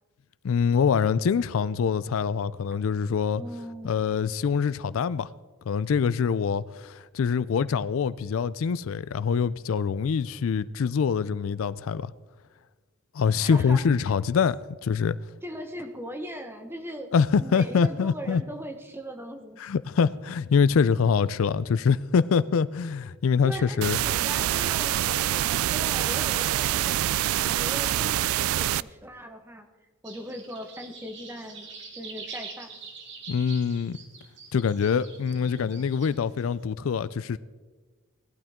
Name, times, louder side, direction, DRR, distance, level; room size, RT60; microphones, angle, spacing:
voice 1, 0.4-3.4 3.8-5.3 5.7-12.1 13.1-15.2 17.1-18.4 19.6-24.0 33.3-34.0 34.5-37.4, left 6 dB, 75° left, 0.4 m, -24 dB
voice 2, 3.4-3.9 13.4-13.9 15.4-17.1 17.4-19.6 23.4-27.0 27.3-29.7 30.0-32.7, equal, 10° right, 1.0 m, -39 dB
sound 1, 23.8-28.8, right 13 dB, 85° right, 0.3 m, -25 dB
sound 2, 30.0-36.5, right 4 dB, 60° right, 2.0 m, -44 dB
18.5 x 12.0 x 3.6 m
head